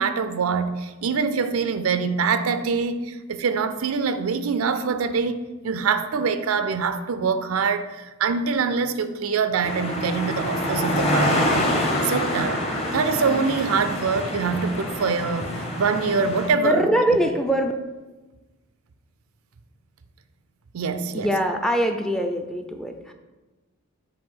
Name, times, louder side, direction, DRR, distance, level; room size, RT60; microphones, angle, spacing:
voice 1, 0.0-11.7 12.0-12.6 12.9-15.5 15.8-16.9 20.7-21.3, right 5 dB, 85° right, 0.5 m, -24 dB
sound 1, 9.6-16.5, left 1 dB, 30° left, 1.0 m, -26 dB
voice 2, 16.6-17.7 21.1-23.1, equal, ahead, 0.4 m, -23 dB
7.6 x 2.6 x 5.5 m
head